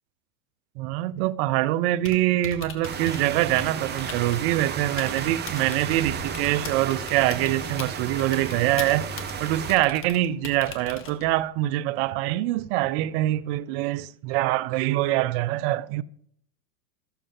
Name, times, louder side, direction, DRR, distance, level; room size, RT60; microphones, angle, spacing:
voice 1, 0.8-9.1 9.4-16.0, right 15 dB, 45° right, 0.5 m, -24 dB
Typing, 1.9-11.5, left 6 dB, 25° left, 1.3 m, -42 dB
sound 1, 2.8-9.8, right 7 dB, 20° right, 0.8 m, -33 dB
13.0 x 7.1 x 3.7 m
hypercardioid pair, 115°, 48 cm